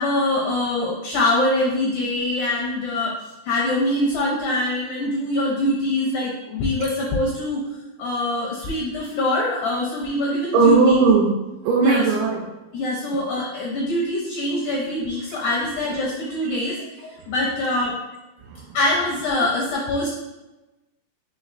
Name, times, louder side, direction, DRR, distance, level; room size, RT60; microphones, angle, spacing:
voice 1, 0.0-3.2 3.5-7.6 8.0-10.9 11.8-12.0 12.7-18.0 18.7-20.1, left 1 dB, 80° left, -2 dB, 1.7 m, -24 dB
voice 2, 10.5-11.4 11.6-12.5 16.4-16.5 17.2-17.3 18.4-18.8, right 4 dB, 80° right, -2 dB, 2.2 m, -18 dB
5.6 x 2.9 x 2.5 m, 1.0 s
omnidirectional pair, 4.2 m